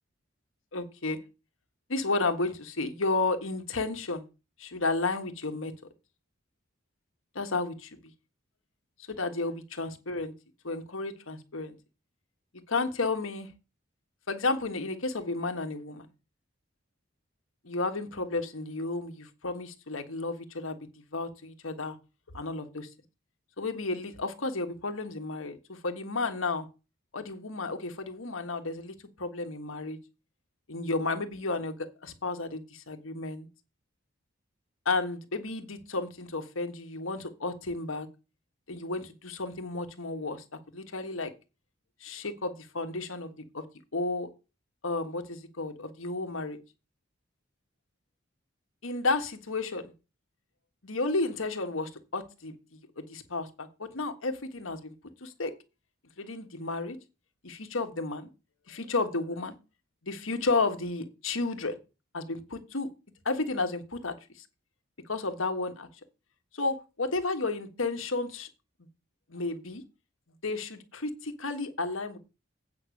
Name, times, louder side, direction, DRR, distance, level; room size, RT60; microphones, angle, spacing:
voice 1, 0.7-1.2 1.9-4.3 4.6-5.7 7.3-8.0 9.1-10.3 10.6-11.8 12.7-13.5 14.3-16.1 17.6-20.8 21.1-22.0 22.3-22.9 23.6-26.7 27.1-30.0 30.7-31.8 32.0-33.5 34.8-38.1 38.7-40.4 40.7-41.3 42.0-43.7 43.9-44.3 44.8-46.6 48.8-49.9 50.8-54.9 55.2-55.5 56.2-57.0 57.4-58.3 58.7-59.6 60.0-61.8 62.1-62.9 63.2-64.1 65.1-65.9 66.5-68.5 69.3-69.8 70.4-72.2, left 3 dB, 85° left, 1.5 m, -32 dB
8.8 x 5.9 x 6.4 m
head